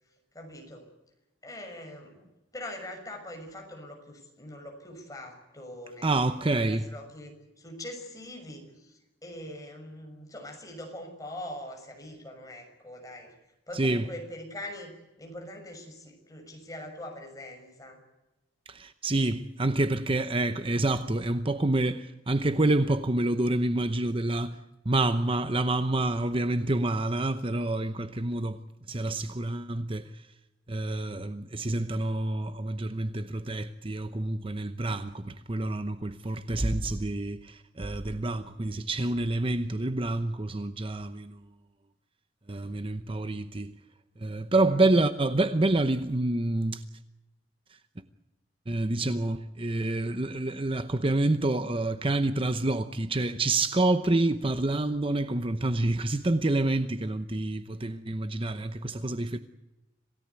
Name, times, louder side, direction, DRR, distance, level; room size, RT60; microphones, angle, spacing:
voice 1, 0.3-0.9 1.4-6.4 6.6-13.3 13.7-18.0 44.6-44.8, left 1 dB, 20° left, 6.3 m, -43 dB
voice 2, 6.0-6.8 13.8-14.0 18.7-24.6 24.8-28.6 28.9-30.2 30.7-41.4 42.5-43.7 44.2-46.8 48.7-59.4, right 2 dB, 30° right, 0.8 m, -28 dB
27.0 x 17.5 x 8.3 m
head